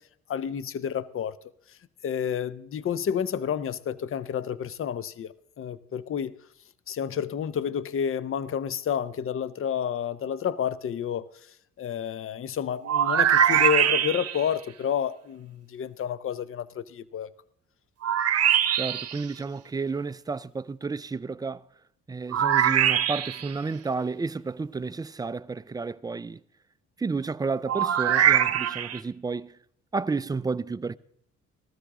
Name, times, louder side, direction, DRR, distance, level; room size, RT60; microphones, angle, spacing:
voice 1, 0.3-1.3 2.0-6.3 6.9-11.3 11.8-17.3, left 8 dB, 45° left, 0.7 m, -30 dB
sound 1, 12.8-14.5 18.0-19.2 22.3-23.5 27.7-29.0, right 9 dB, 55° right, 0.9 m, -22 dB
voice 2, 18.8-21.6 22.1-26.4 27.0-29.6 29.9-31.0, right 4 dB, 15° right, 0.4 m, -31 dB
15.0 x 13.0 x 3.7 m
cardioid pair, 90°, 30 cm